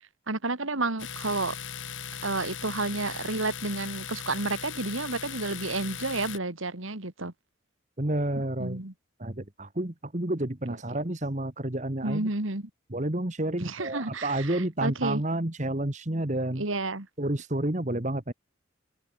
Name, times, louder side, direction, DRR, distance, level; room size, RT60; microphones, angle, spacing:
voice 1, 0.3-1.6 2.2-7.3 8.3-8.9 12.0-12.7 13.6-15.2 16.6-17.1, right 2 dB, 80° right, 2.7 m, -31 dB
Domestic sounds home sounds, 1.0-6.4, left 7 dB, 70° left, 5.7 m, -38 dB
voice 2, 8.0-8.8 9.2-12.3 12.9-16.6 17.2-18.3, right 1 dB, 35° right, 1.6 m, -30 dB
open air
head